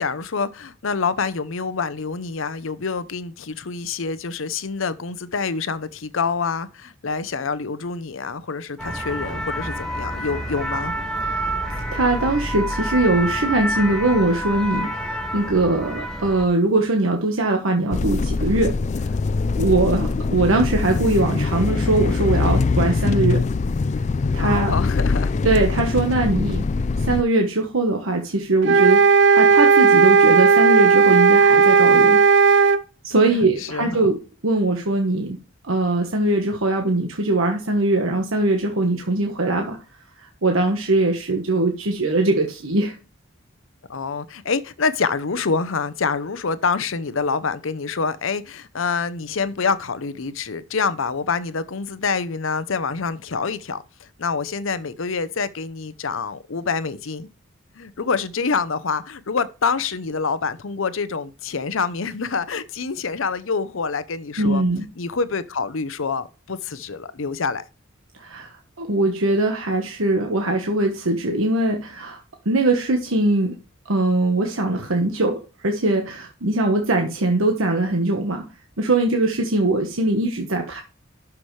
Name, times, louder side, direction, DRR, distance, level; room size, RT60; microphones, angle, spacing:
voice 1, 0.0-10.9 24.4-25.3 33.3-34.0 43.9-57.3 57.8-64.7 65.0-67.6, left 5 dB, 70° left, 0.7 m, -26 dB
sound 1, 8.8-16.4, equal, 5° left, 1.9 m, -28 dB
voice 2, 11.9-18.7 19.6-23.4 24.3-24.7 25.4-26.6 27.0-29.0 29.3-32.2 33.0-34.2 34.4-35.4 35.6-39.8 40.2-42.9 64.4-64.8 68.2-68.5 68.8-72.2 72.4-73.6 73.9-78.4 78.8-80.8, right 2 dB, 75° right, 1.3 m, -21 dB
sound 2, 17.9-27.2, left 4 dB, 35° left, 0.3 m, -22 dB
sound 3, 28.6-32.8, right 5 dB, 55° right, 0.7 m, -14 dB
12.0 x 5.9 x 3.2 m
head